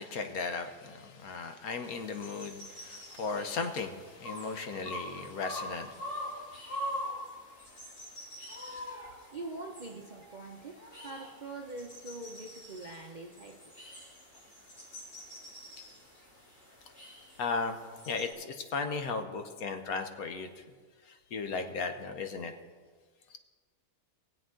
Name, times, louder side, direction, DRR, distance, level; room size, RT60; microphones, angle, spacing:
voice 1, 0.0-6.8 17.4-17.8 18.1-20.6 21.1-22.5, left 4 dB, 70° left, 7 dB, 1.3 m, -36 dB
sound 1, 1.8-18.3, equal, 90° left, 4.5 m, -44 dB
voice 2, 8.6-13.6, right 2 dB, 45° right, 1 dB, 0.6 m, -44 dB
19.0 x 7.8 x 3.8 m, 1.5 s
omnidirectional pair, 1.6 m